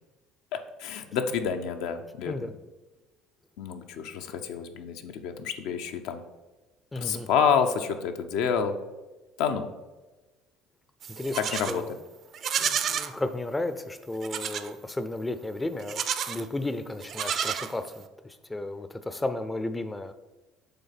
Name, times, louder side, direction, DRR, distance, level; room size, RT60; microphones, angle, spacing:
voice 1, 0.5-2.5 3.6-6.2 7.0-8.7 9.4-9.7 11.4-11.8, left 7 dB, 80° left, 6 dB, 0.6 m, -28 dB
voice 2, 6.9-7.3 11.1-11.9 12.6-16.0 16.3-20.1, left 2 dB, 15° left, 10 dB, 0.4 m, -33 dB
Livestock farm animals working animals, 11.0-11.8 12.3-13.1 14.2-14.7 15.8-16.5 17.0-18.1, right 8 dB, 50° right, 0.5 m, -30 dB
6.8 x 3.6 x 5.8 m, 1.1 s
supercardioid pair, 110°, 0 cm